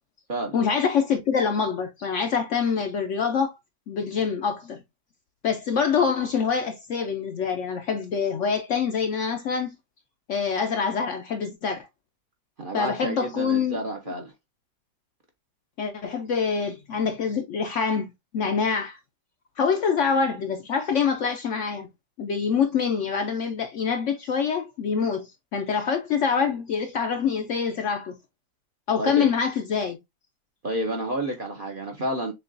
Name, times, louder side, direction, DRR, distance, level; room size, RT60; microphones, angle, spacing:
voice 1, 0.5-3.5 3.9-4.8 5.4-9.8 10.3-11.9 12.7-13.8 15.8-19.0 19.6-21.9 22.2-28.2 28.9-30.0, left 6 dB, 65° left, 0.8 m, -25 dB
voice 2, 12.6-14.3 29.0-29.3 30.6-32.3, right 1 dB, 45° right, 0.7 m, -30 dB
6.6 x 2.3 x 2.6 m
omnidirectional pair, 1.7 m